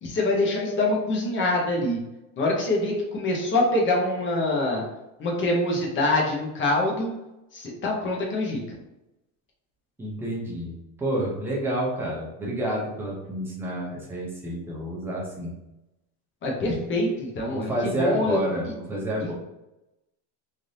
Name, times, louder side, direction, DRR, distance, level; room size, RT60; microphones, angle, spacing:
voice 1, 0.0-2.0 2.4-4.8 5.2-7.1 7.5-8.6 16.4-17.7 18.0-18.4 19.2-19.3, left 2 dB, 25° left, -1 dB, 0.7 m, -25 dB
voice 2, 10.0-15.6 16.6-16.7 17.5-19.3, right 1 dB, 5° right, -3 dB, 0.4 m, -29 dB
3.3 x 2.5 x 2.6 m, 0.93 s
supercardioid pair, 140°, 47 cm